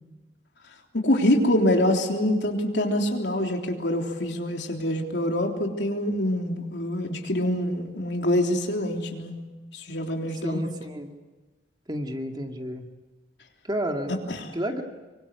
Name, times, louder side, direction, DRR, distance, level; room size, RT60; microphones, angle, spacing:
voice 1, 0.9-9.4 9.7-10.7 14.3-14.5, left 1 dB, 75° left, 2 dB, 3.5 m, -25 dB
voice 2, 10.4-11.1 11.9-12.8 13.6-14.1 14.5-14.8, equal, 25° right, 3 dB, 2.3 m, -30 dB
25.5 x 24.5 x 8.3 m, 1.2 s
head